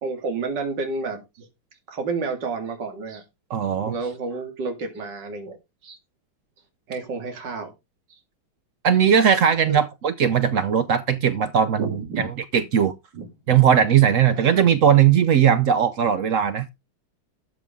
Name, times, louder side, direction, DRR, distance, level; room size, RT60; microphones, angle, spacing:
voice 1, 0.0-1.5 1.9-3.2 3.9-5.6 5.8-6.0 6.9-7.7 8.1-8.2 9.7-9.8 11.8-12.2 13.1-13.3 14.3-14.7, right 4 dB, 55° right, 2.8 m, -30 dB
voice 2, 3.5-3.9 8.8-11.9 12.2-12.3 12.5-12.9 13.5-16.7, right 8 dB, 80° right, 0.7 m, -18 dB
13.0 x 7.0 x 3.6 m
omnidirectional pair, 2.3 m